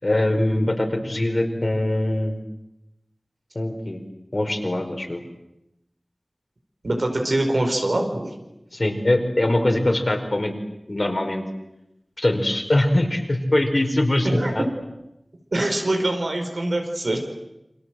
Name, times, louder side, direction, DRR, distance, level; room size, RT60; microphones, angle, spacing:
voice 1, 0.0-2.4 3.5-4.0 4.3-5.2 8.7-10.6 10.9-11.4 12.2-14.3 14.5-14.6, left 1 dB, 60° left, 3 dB, 4.9 m, -22 dB
voice 2, 6.8-8.3 14.2-14.6 15.5-17.2, right 1 dB, 85° right, 3 dB, 5.1 m, -23 dB
28.5 x 25.0 x 7.9 m, 0.88 s
wide cardioid pair, 45°, 0 cm